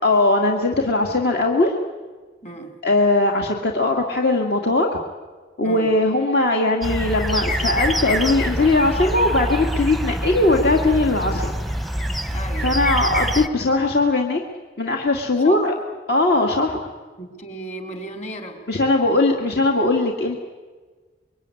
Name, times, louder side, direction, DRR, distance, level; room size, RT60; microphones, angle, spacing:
voice 1, 0.0-1.7 2.8-4.9 5.6-11.5 12.6-14.4 14.8-15.7 16.1-16.8 18.7-20.4, left 2 dB, 60° left, 1 dB, 2.1 m, -19 dB
voice 2, 2.4-2.7 5.6-5.9 12.3-12.7 15.4-15.7 17.2-18.6, right 1 dB, 40° left, 4 dB, 3.8 m, -34 dB
sound 1, 6.8-13.5, equal, ahead, 0.8 m, -25 dB
26.0 x 23.0 x 9.8 m, 1.4 s
head